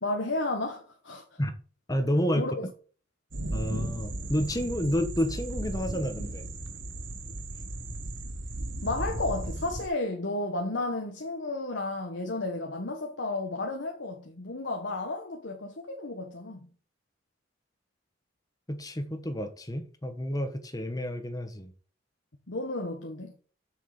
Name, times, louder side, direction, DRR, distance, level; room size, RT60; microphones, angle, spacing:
voice 1, 0.0-1.4 2.4-2.7 8.8-16.6 22.5-23.3, left 2 dB, 75° left, 1.4 m, -32 dB
voice 2, 1.9-2.5 3.5-6.5 18.7-21.7, equal, 20° left, 1.3 m, -30 dB
sound 1, 3.3-9.9, right 1 dB, 85° right, 1.5 m, -36 dB
7.9 x 6.6 x 5.1 m
head